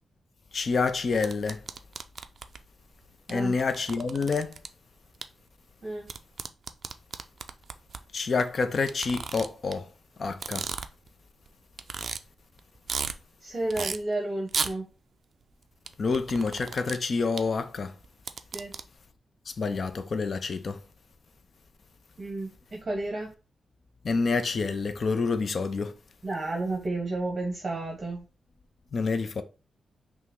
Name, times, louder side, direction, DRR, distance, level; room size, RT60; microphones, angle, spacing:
voice 1, 0.5-1.6 3.3-4.6 8.1-9.9 10.2-10.7 16.0-17.9 19.6-20.8 24.0-25.9 28.9-29.4, left 4 dB, 40° left, 0.4 m, -28 dB
sound 1, 1.2-2.6 3.3-3.4 3.6-4.7 5.2-5.3 6.1-8.0 8.9-9.7 10.3-11.1 11.5-11.6 11.8-12.2 12.6-13.1 13.7-14.0 14.5-14.7 15.9-17.0 17.4-17.5 18.0-18.8, right 5 dB, 45° right, 0.4 m, -34 dB
voice 2, 13.4-14.9 18.5-18.7 22.2-23.3 26.2-28.2, right 2 dB, 30° right, 0.9 m, -32 dB
5.5 x 2.0 x 3.6 m
wide cardioid pair, 140°, 0 cm